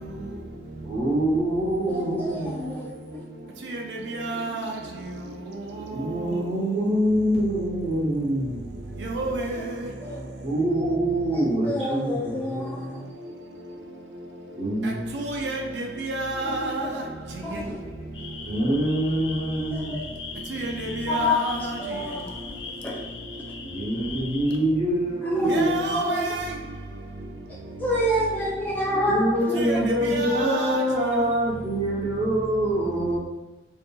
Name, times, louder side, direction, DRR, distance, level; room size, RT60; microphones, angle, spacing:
voice 1, 0.8-2.9 5.9-8.7 10.4-13.0 14.6-15.1 18.4-20.1 23.6-25.9 29.1-33.2, right 1 dB, 40° right, 0.7 m, -25 dB
voice 2, 1.9-2.9 9.4-9.6 10.0-10.2 11.3-13.0 16.4-16.9 17.4-17.8 19.7-20.0 21.1-21.3 21.6-22.3 22.8-23.1 25.2-26.4 27.8-29.1 29.5-29.6, left 1 dB, 10° left, 0.4 m, -29 dB
voice 3, 3.6-4.7 5.5-6.4 9.0-9.7 14.8-17.1 17.3-17.7 20.5-21.8 25.4-26.5 29.5-30.8, right 2 dB, 80° right, 0.5 m, -30 dB
sound 1, 18.1-24.6, left 4 dB, 90° left, 0.4 m, -40 dB
2.6 x 2.4 x 2.3 m
head